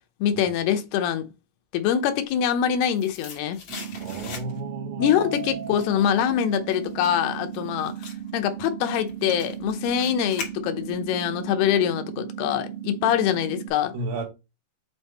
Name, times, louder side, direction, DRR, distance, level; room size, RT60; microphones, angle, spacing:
voice 1, 0.2-1.3 1.7-3.6 5.0-7.9 8.3-13.9, left 9 dB, 80° left, 2.4 m, -24 dB
sound 1, 2.4-4.8 5.2-11.1 11.4-11.5, left 5 dB, 60° left, 1.6 m, -41 dB
sound 2, 3.7-13.7, right 10 dB, 70° right, 2.3 m, -36 dB
voice 2, 4.0-5.2 13.9-14.2, right 2 dB, 85° right, 4.8 m, -33 dB
Mallet percussion, 5.0-7.4, right 5 dB, 20° left, 0.5 m, -39 dB
8.4 x 4.2 x 3.6 m
omnidirectional pair, 5.5 m